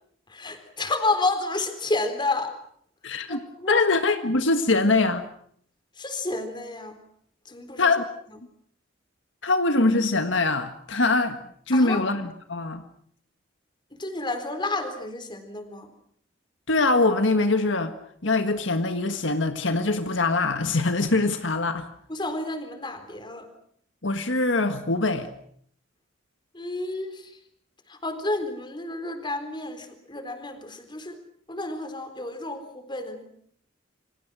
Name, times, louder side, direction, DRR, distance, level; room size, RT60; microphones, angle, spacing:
voice 1, 0.3-2.5 3.3-3.9 6.0-7.0 7.5-7.9 11.7-12.0 14.0-15.9 22.1-23.5 26.5-27.3 27.9-31.2 31.5-33.2, left 2 dB, 25° left, 8 dB, 4.0 m, -30 dB
voice 2, 3.0-3.4 3.7-5.2 7.8-8.1 9.4-11.4 11.7-12.8 16.7-17.9 18.2-21.9 24.0-25.3, left 3 dB, 75° left, 8 dB, 1.6 m, -23 dB
28.5 x 25.0 x 6.2 m, 0.64 s
head